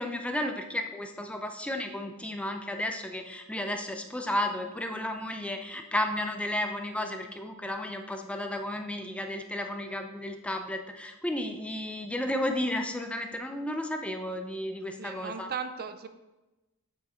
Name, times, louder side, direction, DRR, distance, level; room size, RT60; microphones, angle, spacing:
voice 1, 0.0-15.5, left 1 dB, 5° left, 5 dB, 0.5 m, -33 dB
voice 2, 15.0-16.1, right 6 dB, 45° right, 9 dB, 0.5 m, -37 dB
7.0 x 6.4 x 4.4 m, 1.0 s
head